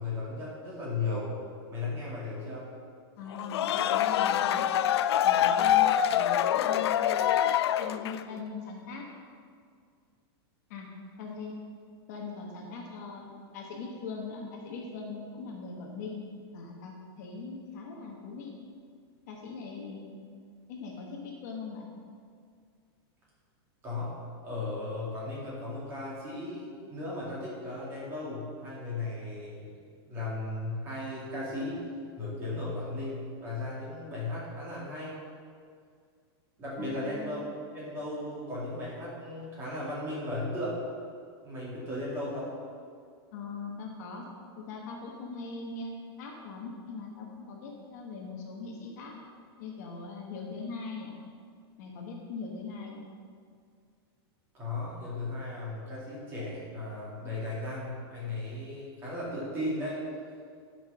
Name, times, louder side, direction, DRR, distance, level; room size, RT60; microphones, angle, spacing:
voice 1, 0.0-1.3 1.7-2.7 23.8-24.1 24.4-31.8 32.2-35.2 36.6-40.8 41.4-42.5 54.5-60.0, left 2 dB, 20° right, -6 dB, 2.5 m, -36 dB
voice 2, 3.2-4.6 5.2-7.1 7.8-9.1 10.7-10.9 11.2-11.5 12.1-16.2 16.5-18.6 19.3-20.2 20.7-21.9 36.8-37.3 43.3-44.3 44.6-49.2 49.6-51.2 51.8-53.0, left 4 dB, 40° left, 0 dB, 1.2 m, -41 dB
sound 1, 3.3-8.3, left 10 dB, 80° left, 0.4 m, -25 dB
10.0 x 5.9 x 5.7 m, 2.2 s
supercardioid pair, 180°, 13 cm